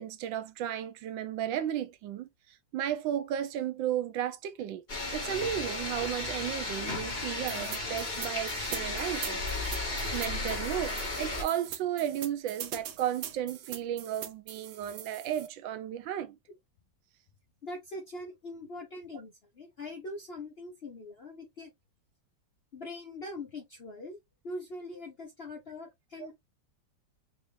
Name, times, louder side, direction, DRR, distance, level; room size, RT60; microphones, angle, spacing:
voice 1, 0.0-2.3 2.7-4.8 5.1-9.4 9.8-16.4 26.2-26.3, right 10 dB, 85° right, 1.4 m, -34 dB
sound 1, 4.9-11.4, left 2 dB, 30° left, 1.1 m, -34 dB
sound 2, 7.5-15.5, right 10 dB, 70° right, 1.1 m, -42 dB
voice 2, 17.6-21.7 22.7-24.2 24.4-26.3, left 2 dB, 55° left, 0.7 m, -42 dB
4.2 x 2.6 x 3.2 m
omnidirectional pair, 2.1 m